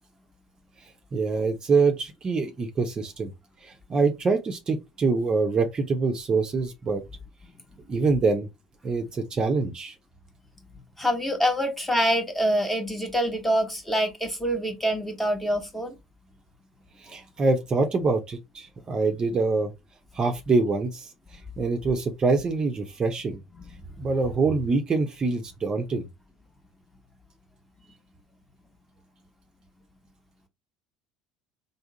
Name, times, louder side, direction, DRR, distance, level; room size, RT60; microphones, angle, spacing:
voice 1, 0.8-3.3 3.6-7.0 7.9-8.5 8.8-9.9 17.0-19.7 20.1-23.4 24.0-26.1, right 4 dB, 35° right, 0.7 m, -25 dB
voice 2, 11.0-15.9, equal, 10° left, 1.2 m, -25 dB
3.5 x 2.0 x 3.9 m
hypercardioid pair, 70°, 2 cm